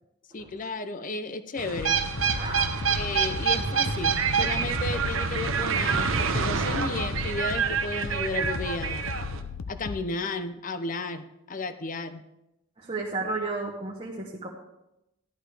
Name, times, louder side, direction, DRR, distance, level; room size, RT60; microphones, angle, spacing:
voice 1, 0.3-2.0 2.9-9.1 9.7-12.2, left 3 dB, 40° left, 11 dB, 0.6 m, -33 dB
sound 1, 1.6-9.4, right 6 dB, 75° right, 0.9 m, -27 dB
sound 2, 1.8-10.1, left 5 dB, 80° left, 0.6 m, -37 dB
voice 2, 2.3-3.0 12.8-14.5, right 3 dB, 30° right, -3 dB, 1.1 m, -33 dB
13.0 x 11.0 x 3.4 m, 0.89 s
head